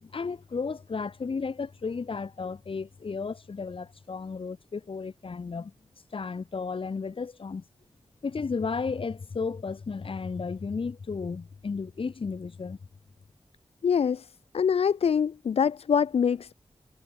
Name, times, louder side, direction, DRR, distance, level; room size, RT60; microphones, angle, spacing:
voice 1, 0.0-5.7 6.1-7.6 8.2-12.8, left 5 dB, 65° left, 3.3 m, -33 dB
voice 2, 13.8-14.3 14.5-16.5, left 7 dB, 85° left, 0.5 m, -24 dB
wide cardioid pair, 110°, 10 cm